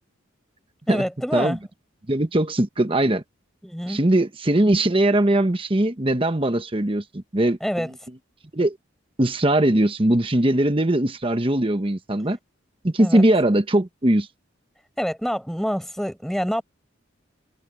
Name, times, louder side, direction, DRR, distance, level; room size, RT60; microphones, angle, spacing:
voice 1, 0.9-1.6 3.6-4.0 7.6-7.9 13.0-13.2 15.0-16.6, equal, ahead, 6.1 m, -26 dB
voice 2, 2.1-3.2 3.9-7.9 8.5-8.8 9.2-12.4 12.8-14.3, right 1 dB, 25° right, 1.1 m, -20 dB
head